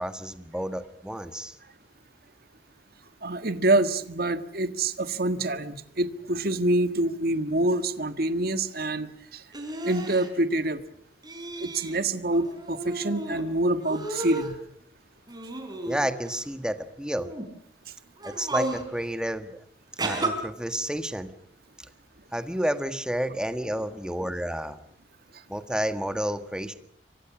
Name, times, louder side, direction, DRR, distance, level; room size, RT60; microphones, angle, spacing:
voice 1, 0.0-1.6 15.8-17.3 18.2-19.5 20.0-21.3 22.3-24.8 25.5-26.7, equal, 5° right, 9 dB, 1.5 m, -30 dB
voice 2, 3.2-9.4 9.8-10.8 11.6-14.6, right 1 dB, 60° right, 10 dB, 1.6 m, -26 dB
sound 1, 9.5-10.3 11.2-12.0 12.3-13.4 13.8-14.6 15.3-16.4 17.1-17.5 18.2-18.8 20.0-20.3, right 2 dB, 25° right, 4.6 m, -33 dB
28.0 x 24.5 x 6.2 m, 0.66 s
head